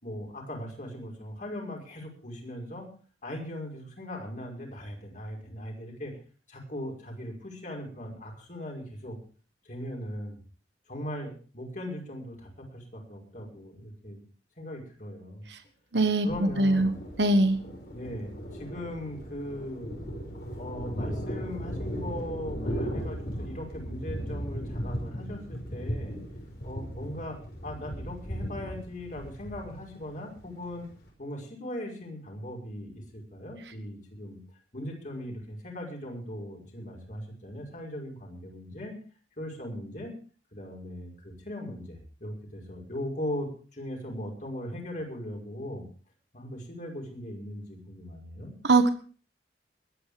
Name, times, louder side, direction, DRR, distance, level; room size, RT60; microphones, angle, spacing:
voice 1, 0.0-2.9 3.2-6.1 6.5-9.2 9.6-10.4 10.9-14.2 14.6-15.5 16.2-17.1 17.9-19.9 20.5-26.2 26.6-30.9 31.2-34.4 34.7-38.9 39.4-40.1 40.5-45.8 46.3-48.5, left 1 dB, 45° left, 0 dB, 5.6 m, -39 dB
voice 2, 15.9-16.3 16.6-16.9 17.2-17.6 48.6-48.9, right 2 dB, 80° right, 9 dB, 1.4 m, -21 dB
Thunder, 16.3-31.1, equal, 60° left, 5.3 m, -37 dB
21.5 x 9.9 x 5.1 m, 0.40 s
head